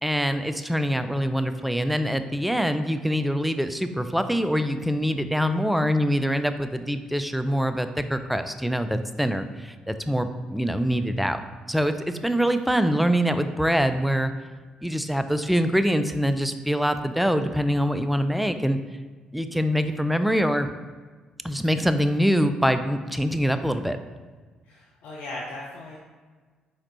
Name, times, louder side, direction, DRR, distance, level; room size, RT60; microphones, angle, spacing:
voice 1, 0.0-11.4 11.7-14.3 14.8-18.8 19.3-20.7 21.4-24.0, equal, ahead, 9 dB, 0.4 m, -24 dB
voice 2, 24.6-26.0, left 2 dB, 65° left, -4 dB, 0.6 m, -38 dB
4.2 x 4.0 x 3.0 m, 1.4 s
hypercardioid pair, 45°, 3 cm